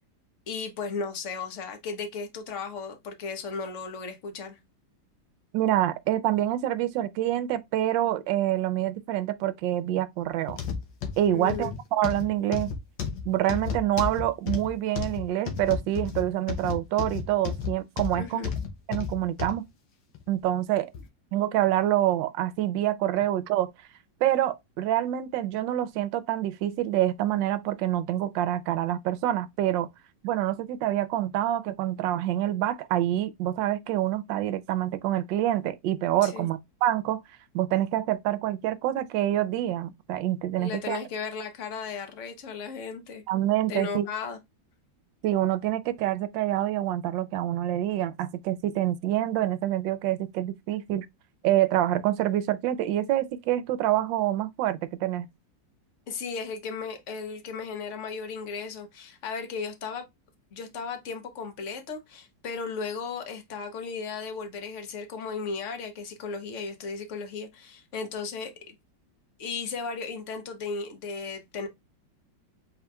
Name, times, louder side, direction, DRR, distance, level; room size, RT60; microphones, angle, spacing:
voice 1, 0.5-4.6 11.3-11.7 18.1-18.5 36.2-36.5 40.6-43.2 43.7-44.4 56.1-60.0 60.5-68.8 69.4-71.7, left 5 dB, 50° left, 1.1 m, -35 dB
voice 2, 5.5-10.6 11.2-12.7 13.2-18.5 18.9-19.7 20.3-20.9 21.3-23.7 24.2-29.9 30.2-37.2 37.5-41.0 43.3-44.1 45.2-51.1 51.4-55.3, right 13 dB, 80° right, 1.2 m, -26 dB
sound 1, 10.5-19.6 20.1-20.3 20.9-21.0, left 6 dB, 80° left, 1.6 m, -33 dB
4.6 x 4.2 x 2.3 m
omnidirectional pair, 2.1 m